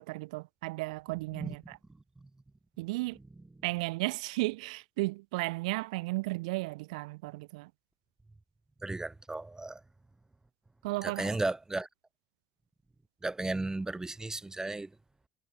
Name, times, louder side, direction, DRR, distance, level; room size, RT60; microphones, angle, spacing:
voice 1, 0.0-1.8 2.8-3.2 3.6-7.7 10.8-11.4, right 23 dB, 85° right, 1.2 m, -34 dB
voice 2, 8.8-9.8 11.0-11.9 13.2-14.9, right 2 dB, 15° right, 3.4 m, -34 dB
supercardioid pair, 70°, 4 cm